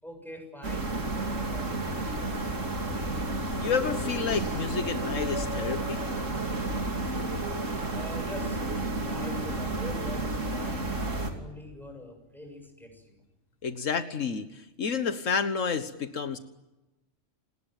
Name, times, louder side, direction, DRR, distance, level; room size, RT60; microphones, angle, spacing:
voice 1, 0.0-2.2 7.8-13.2, left 1 dB, ahead, 4 dB, 7.2 m, -44 dB
sound 1, 0.6-11.3, right 2 dB, 80° right, 3.5 m, -31 dB
voice 2, 3.6-6.0 13.6-16.4, left 6 dB, 80° left, 10 dB, 1.7 m, -30 dB
28.5 x 20.0 x 9.1 m, 1.0 s
omnidirectional pair, 1.3 m